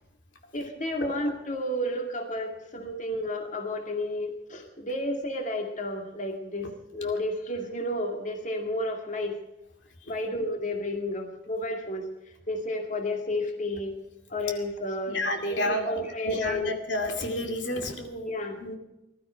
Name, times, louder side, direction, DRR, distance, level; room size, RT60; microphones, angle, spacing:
voice 1, 0.5-6.7 6.9-9.4 10.1-12.1 12.5-14.0 14.3-15.2 15.5-16.7 18.2-18.6, left 1 dB, 45° left, 3 dB, 2.3 m, -31 dB
voice 2, 15.1-15.9 16.2-18.3 18.6-18.8, left 1 dB, 80° left, 3 dB, 2.5 m, -30 dB
20.5 x 13.0 x 4.6 m, 0.96 s
head